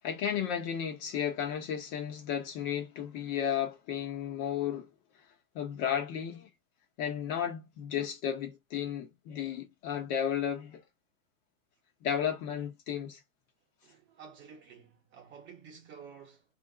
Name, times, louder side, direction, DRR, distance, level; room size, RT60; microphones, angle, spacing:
voice 1, 0.0-4.9 5.5-6.5 7.0-10.8 12.0-13.2, left 9 dB, 40° left, 0.9 m, -33 dB
voice 2, 13.8-16.4, right 6 dB, 30° right, 1.0 m, -51 dB
2.6 x 2.0 x 3.8 m
hypercardioid pair, 130°, 40 cm